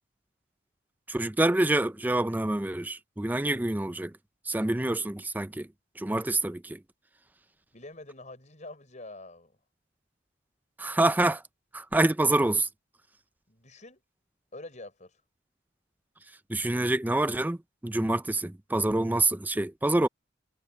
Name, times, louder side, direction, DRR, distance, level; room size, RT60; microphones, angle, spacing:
voice 1, 1.1-4.1 4.5-5.7 6.0-6.8 10.8-11.4 11.7-12.7 16.5-17.6 17.8-20.1, right 2 dB, 10° right, 0.4 m, -26 dB
voice 2, 7.7-9.5 13.5-14.0 14.5-15.2, left 2 dB, 40° left, 6.1 m, -45 dB
head